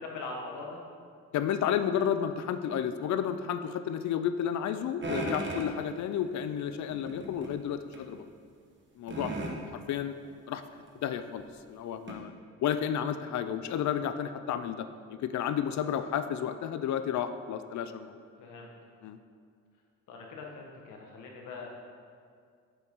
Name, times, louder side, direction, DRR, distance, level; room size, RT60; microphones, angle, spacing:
voice 1, 0.0-0.8 18.4-18.7 20.1-21.7, left 3 dB, 85° left, 0 dB, 1.5 m, -41 dB
voice 2, 1.3-8.2 9.0-9.3 9.7-10.2 10.5-12.3 12.6-14.9 15.2-18.2 19.0-19.2, left 9 dB, 70° left, 10 dB, 0.6 m, -32 dB
sound 1, 5.0-5.7 6.9-7.5 7.9-8.0 9.1-9.6 10.9-11.0 11.4-11.5 12.1-12.2, right 2 dB, 40° right, 1.4 m, -35 dB
8.3 x 6.9 x 3.8 m, 2.2 s
cardioid pair, 90°, 30 cm